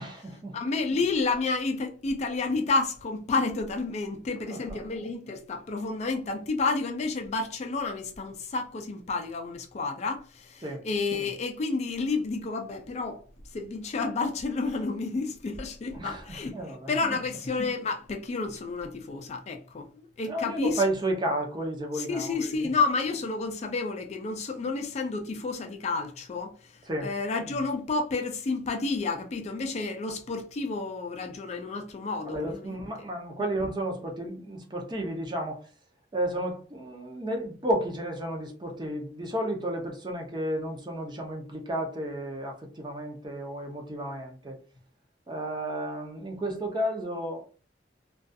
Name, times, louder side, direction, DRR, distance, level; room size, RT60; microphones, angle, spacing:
voice 1, 0.0-0.6 4.5-4.8 10.6-10.9 15.9-17.0 20.2-22.7 26.9-27.1 32.2-35.7 36.1-44.6 45.3-47.5, right 1 dB, 25° right, 0.6 m, -32 dB
voice 2, 0.5-13.2 13.5-16.5 16.9-20.8 21.9-32.8, left 3 dB, 40° left, 0.3 m, -30 dB
2.3 x 2.3 x 2.5 m
head